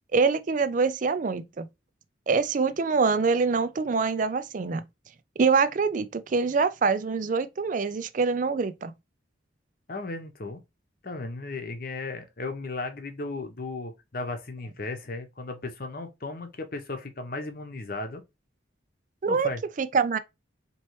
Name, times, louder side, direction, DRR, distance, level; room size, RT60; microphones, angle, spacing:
voice 1, 0.1-1.7 2.3-4.8 5.4-8.9 19.2-19.5 19.8-20.2, right 4 dB, 40° right, 0.4 m, -25 dB
voice 2, 9.9-10.6 11.0-18.2 19.3-19.6, left 3 dB, 50° left, 0.8 m, -35 dB
4.3 x 3.0 x 3.0 m
head